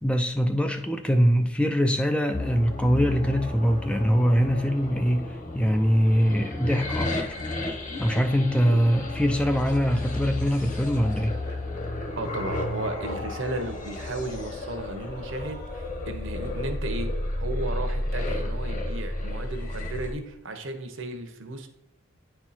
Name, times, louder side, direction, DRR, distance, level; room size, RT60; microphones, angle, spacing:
voice 1, 0.0-7.2 8.0-11.4, equal, 5° left, 0.3 m, -23 dB
sound 1, 2.3-20.1, left 1 dB, 35° left, 1.1 m, -32 dB
voice 2, 12.2-17.1 17.4-21.7, right 2 dB, 65° right, 1.0 m, -34 dB
9.5 x 4.5 x 4.2 m
head